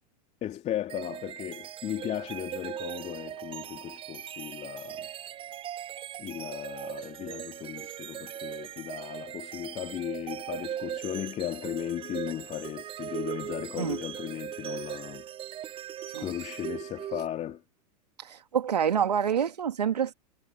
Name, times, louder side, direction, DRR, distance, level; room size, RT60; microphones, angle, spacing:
voice 1, 0.4-5.1 6.2-15.2 16.2-17.6, left 12 dB, 35° left, 3.2 m, -36 dB
sound 1, 0.9-17.5, right 11 dB, 25° right, 0.6 m, -39 dB
voice 2, 18.2-20.1, right 8 dB, 80° right, 2.4 m, -27 dB
figure-of-eight pair, 90°, 21 cm